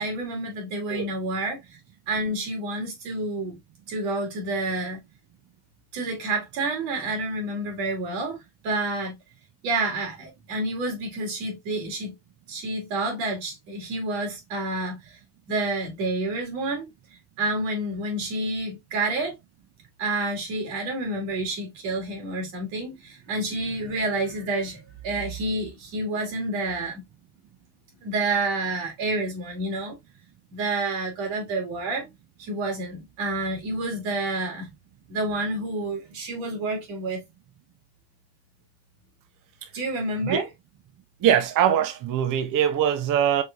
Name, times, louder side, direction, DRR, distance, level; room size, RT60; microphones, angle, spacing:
voice 1, 0.0-1.6 2.1-3.6 3.9-5.0 5.9-8.4 8.6-9.1 9.6-12.2 12.5-15.2 15.5-16.9 17.4-19.3 20.0-27.0 28.0-30.0 30.5-32.1 32.4-34.7 35.1-37.2 39.7-40.5, right 2 dB, 90° right, 2.4 m, -29 dB
voice 2, 41.2-43.4, right 9 dB, 45° right, 0.6 m, -22 dB
4.7 x 3.3 x 2.4 m
cardioid pair, 110°, 48 cm